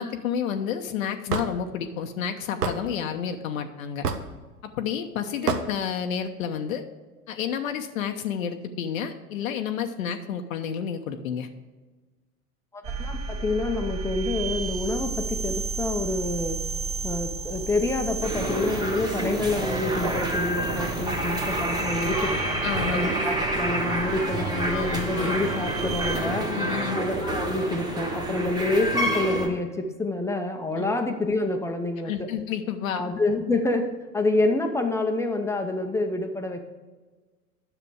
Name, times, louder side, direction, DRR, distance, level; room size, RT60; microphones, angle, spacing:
voice 1, 0.0-4.1 4.8-6.8 7.3-11.5 22.6-23.1 24.7-25.4 26.5-27.0 30.8-30.9 32.0-33.0, left 8 dB, 60° left, 6 dB, 0.8 m, -30 dB
Hammer / Wood, 1.3-1.5 2.6-2.8 4.0-4.3 5.5-5.7, right 5 dB, 80° right, 1.0 m, -26 dB
voice 2, 12.7-16.6 17.0-22.4 22.9-26.6 26.9-32.3 32.9-33.9 34.1-36.6, left 2 dB, 5° left, 4 dB, 0.7 m, -27 dB
sound 1, 12.8-26.2, right 4 dB, 45° right, 2.3 m, -34 dB
sound 2, 18.2-29.5, right 1 dB, 10° right, 1.4 m, -28 dB
10.0 x 6.9 x 4.8 m, 1.3 s
figure-of-eight pair, 95°, 46 cm